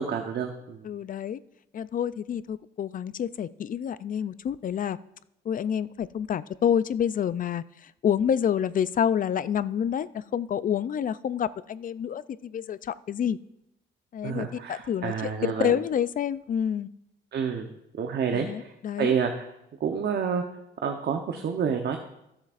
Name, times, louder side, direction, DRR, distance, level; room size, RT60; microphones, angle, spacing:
voice 1, 0.0-0.9 14.2-15.7 17.3-18.7 19.0-19.5 19.8-20.4 20.8-22.0, right 7 dB, 55° right, 4 dB, 0.9 m, -29 dB
voice 2, 0.8-1.4 1.7-5.0 5.5-13.4 14.1-16.9 18.3-19.1, left 8 dB, 45° left, 16 dB, 0.4 m, -28 dB
15.5 x 7.3 x 2.5 m, 0.84 s
cardioid pair, 90°, 20 cm